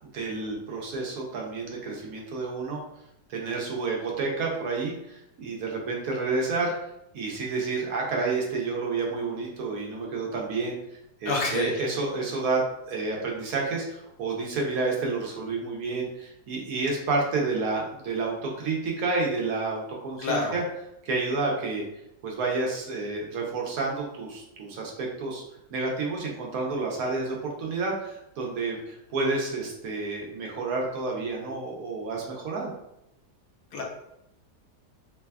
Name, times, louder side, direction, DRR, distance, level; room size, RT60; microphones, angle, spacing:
voice 1, 0.1-2.8 3.3-6.7 7.1-10.8 11.2-12.6 12.9-20.6 21.0-21.8 22.2-25.4 25.7-32.7, right 3 dB, 65° right, -1 dB, 1.0 m, -30 dB
voice 2, 11.3-11.8 20.2-20.6 33.7-33.8, left 3 dB, 70° left, 0 dB, 1.1 m, -27 dB
3.3 x 2.2 x 2.2 m, 0.81 s
omnidirectional pair, 1.8 m